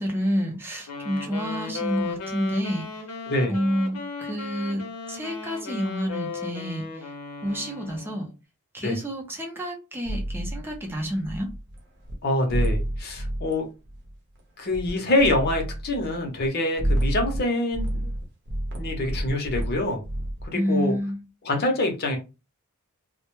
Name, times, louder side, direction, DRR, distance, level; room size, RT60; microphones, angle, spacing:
voice 1, 0.0-3.1 3.5-4.8 5.1-7.1 7.4-8.3 8.7-11.5 20.5-21.2, equal, 10° right, 0.6 m, -29 dB
Wind instrument woodwind instrument, 0.9-8.3, left 4 dB, 85° left, 0.7 m, -36 dB
sound 1, 10.0-11.8 12.0-12.1 12.5-13.5 13.9-14.4 14.7-14.9 15.2-16.5 16.8-17.4 17.7-20.5, right 1 dB, 50° right, 0.7 m, -29 dB
voice 2, 12.2-13.7 14.6-18.1 18.8-20.0 20.4-20.9 21.4-22.2, left 1 dB, 45° left, 0.7 m, -25 dB
2.1 x 2.1 x 3.0 m
head